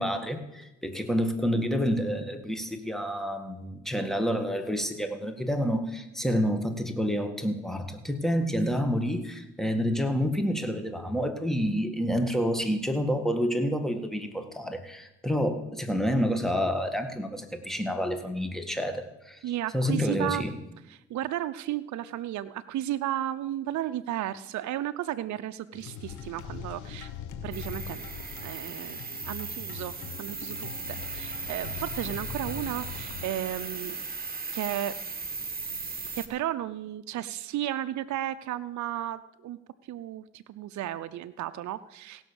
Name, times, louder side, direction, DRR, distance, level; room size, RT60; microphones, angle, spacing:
voice 1, 0.0-19.4 19.7-20.6, equal, ahead, 7 dB, 1.8 m, -28 dB
voice 2, 19.4-20.4 20.9-27.1 27.4-28.0 28.4-34.0 34.5-34.9 36.1-39.6 39.9-42.2, right 13 dB, 75° right, 11 dB, 0.6 m, -34 dB
sound 1, 25.7-33.3, left 7 dB, 90° left, 1.2 m, -41 dB
sound 2, 27.5-36.3, right 4 dB, 30° right, 1.6 m, -37 dB
16.5 x 6.2 x 7.0 m, 0.93 s
supercardioid pair, 55°, 29 cm